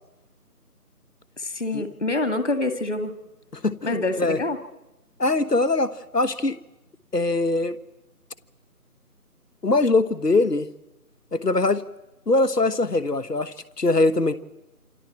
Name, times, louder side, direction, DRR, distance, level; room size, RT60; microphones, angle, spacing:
voice 1, 1.4-3.2 3.8-4.6, left 2 dB, 50° left, 8 dB, 2.1 m, -26 dB
voice 2, 3.6-4.4 5.2-6.6 7.1-7.8 9.6-10.7 11.3-11.8 12.3-14.4, left 2 dB, 85° left, 14 dB, 1.4 m, -22 dB
28.5 x 25.5 x 4.5 m, 0.97 s
figure-of-eight pair, 165°, 47 cm